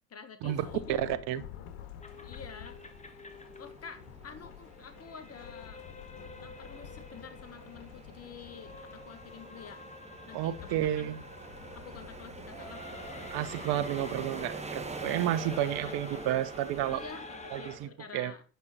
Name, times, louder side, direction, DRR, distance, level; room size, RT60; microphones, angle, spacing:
voice 1, 0.1-1.0 2.2-2.8 3.0-3.2 3.6-5.8 6.4-9.9 10.3-11.1 11.8-13.9 15.6-16.0 16.9-18.4, left 6 dB, 35° left, 1.9 m, -49 dB
Thunderstorm / Rain, 0.5-17.1, left 9 dB, 65° left, 1.9 m, -51 dB
voice 2, 1.0-1.4 10.3-11.2 13.3-17.0 17.5-18.3, right 12 dB, 60° right, 1.2 m, -31 dB
sound 1, 2.0-17.8, left 2 dB, 15° left, 1.6 m, -49 dB
sound 2, 2.1-17.9, right 3 dB, 15° right, 1.7 m, -46 dB
10.5 x 5.9 x 5.9 m
hypercardioid pair, 70°, 43 cm